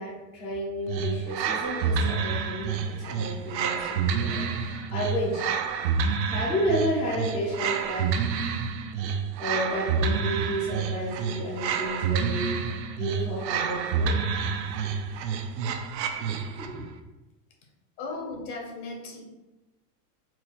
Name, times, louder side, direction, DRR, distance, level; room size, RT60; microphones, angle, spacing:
voice 1, 0.0-5.5 6.3-8.2 9.4-14.1 16.2-16.8, equal, 15° left, -6 dB, 0.4 m, -31 dB
sound 1, 0.9-16.8, right 6 dB, 90° right, 0.7 m, -29 dB
voice 2, 18.0-19.2, left 3 dB, 60° left, 0 dB, 1.3 m, -36 dB
4.3 x 2.4 x 4.0 m, 1.1 s
supercardioid pair, 165°, 49 cm